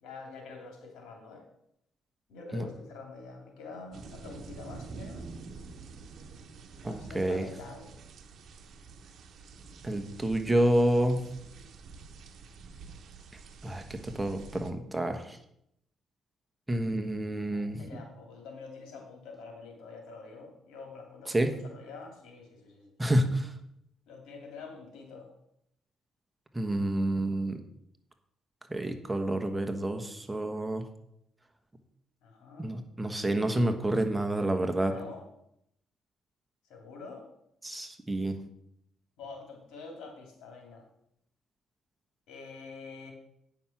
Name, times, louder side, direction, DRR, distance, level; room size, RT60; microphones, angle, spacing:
voice 1, 0.0-1.4 2.3-5.3 6.8-7.9 17.5-21.3 21.6-22.9 24.1-25.3 32.2-32.7 34.8-35.2 36.7-37.3 39.2-40.8 42.3-43.1, left 4 dB, 85° left, 2 dB, 2.7 m, -46 dB
sound 1, 3.9-14.7, right 4 dB, 65° right, 1.0 m, -47 dB
voice 2, 6.8-7.5 9.8-11.2 13.6-15.4 16.7-18.0 21.3-21.6 23.0-23.5 26.5-27.6 28.7-30.8 32.6-34.9 37.6-38.4, right 1 dB, 15° right, 6 dB, 1.2 m, -29 dB
9.3 x 5.7 x 5.9 m, 0.76 s
cardioid pair, 90°, 0 cm